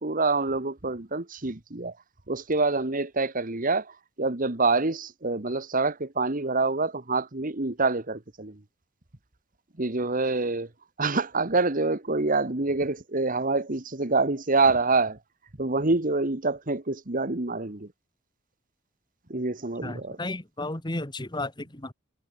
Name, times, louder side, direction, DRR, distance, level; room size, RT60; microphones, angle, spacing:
voice 1, 0.0-2.0 2.3-8.6 9.8-10.7 11.0-15.2 15.6-17.9 19.3-20.2, right 3 dB, 40° right, 1.6 m, -26 dB
voice 2, 19.8-21.9, left 2 dB, 20° left, 2.0 m, -33 dB
head